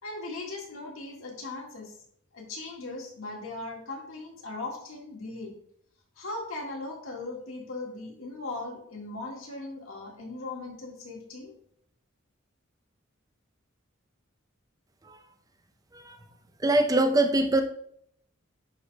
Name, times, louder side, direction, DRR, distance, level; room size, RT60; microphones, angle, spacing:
voice 1, 0.0-2.0 2.3-5.5 6.2-11.5, left 2 dB, 85° left, 0 dB, 1.8 m, -38 dB
voice 2, 16.6-17.6, right 2 dB, 15° right, 5 dB, 0.6 m, -23 dB
10.5 x 5.0 x 2.3 m, 0.68 s
head